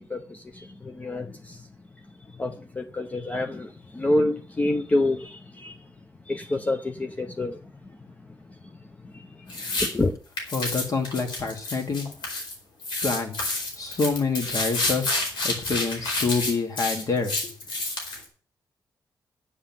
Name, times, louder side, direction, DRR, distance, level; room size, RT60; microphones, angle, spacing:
voice 1, 0.0-1.6 2.4-5.7 6.3-7.6 9.1-9.3 9.8-10.2, left 2 dB, 20° left, 0.6 m, -27 dB
sound 1, 9.5-9.9 10.4-12.5 12.8-18.2, left 2 dB, 90° left, 4.6 m, -29 dB
voice 2, 10.5-12.1 13.0-17.5, left 4 dB, 50° left, 2.4 m, -27 dB
10.0 x 7.8 x 7.4 m
wide cardioid pair, 145°, 8 cm